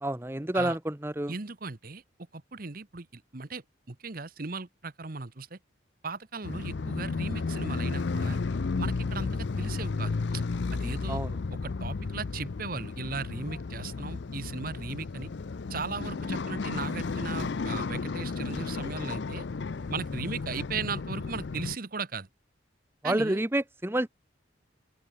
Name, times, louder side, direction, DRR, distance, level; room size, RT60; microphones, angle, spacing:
voice 1, 0.0-1.3 11.1-11.3 23.0-24.1, right 1 dB, 10° right, 0.8 m, -29 dB
voice 2, 1.3-2.0 2.3-5.6 6.0-8.4 8.8-10.4 10.7-11.2 11.5-15.3 15.7-19.5 19.9-22.3 23.0-23.4, right 4 dB, 45° right, 1.1 m, -37 dB
sound 1, 6.4-21.8, left 4 dB, 65° left, 0.5 m, -33 dB
open air
head